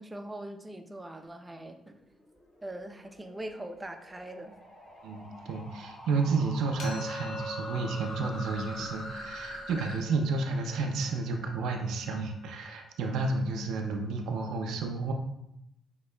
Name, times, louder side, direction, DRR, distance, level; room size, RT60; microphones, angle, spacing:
voice 1, 0.0-1.9 2.6-4.6, right 1 dB, 15° right, 6 dB, 0.5 m, -41 dB
sound 1, 1.9-10.0, left 1 dB, 45° left, 1.3 m, -45 dB
voice 2, 5.0-15.1, right 3 dB, 80° right, 3 dB, 0.5 m, -31 dB
sound 2, 6.8-12.6, equal, 80° left, 0.8 m, -43 dB
6.4 x 2.8 x 2.2 m, 0.81 s
cardioid pair, 90°, 0 cm